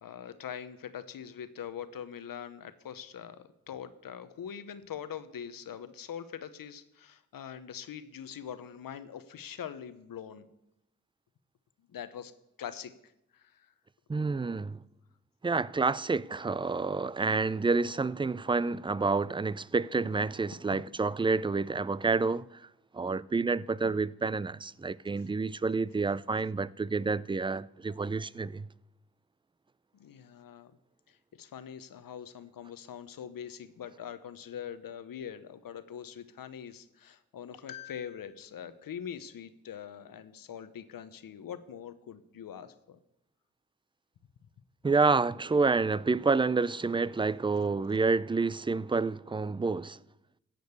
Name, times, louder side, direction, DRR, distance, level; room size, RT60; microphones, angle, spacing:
voice 1, 0.0-10.5 11.9-12.3 12.6-13.7 20.7-20.8 29.9-30.7 31.1-43.0, left 8 dB, 80° left, 0.9 m, -43 dB
voice 2, 14.1-14.8 15.4-22.7 22.9-28.7 44.8-50.0, right 4 dB, 15° right, 0.4 m, -29 dB
15.0 x 5.2 x 8.0 m
cardioid pair, 45°, 34 cm